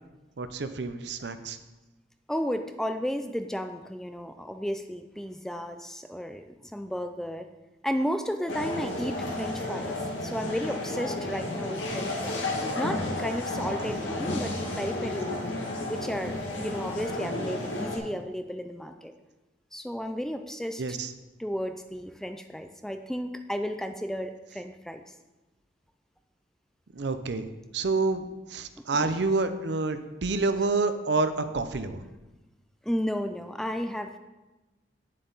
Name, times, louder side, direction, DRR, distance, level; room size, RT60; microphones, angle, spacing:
voice 1, 0.4-1.6 20.8-21.1 26.9-27.5 27.7-28.2 28.5-32.0, right 3 dB, 65° right, 10 dB, 0.6 m, -28 dB
voice 2, 2.3-7.5 7.8-12.4 12.8-15.5 15.9-19.1 19.7-21.0 21.4-25.0 28.9-29.1 32.8-34.2, equal, 5° left, 7 dB, 0.3 m, -33 dB
sound 1, 8.5-18.0, left 2 dB, 85° left, 1.8 m, -32 dB
9.1 x 7.5 x 3.9 m, 1.1 s
head